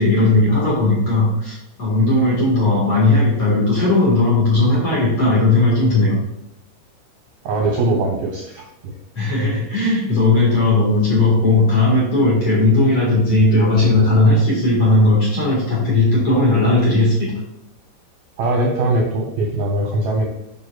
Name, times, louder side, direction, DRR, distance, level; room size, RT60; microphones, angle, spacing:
voice 1, 0.0-6.1 9.2-17.3, left 2 dB, 45° left, -4 dB, 2.2 m, -16 dB
voice 2, 7.5-8.9 18.4-20.3, right 2 dB, 75° right, 0 dB, 2.0 m, -21 dB
9.8 x 6.1 x 2.4 m, 0.90 s
omnidirectional pair, 4.8 m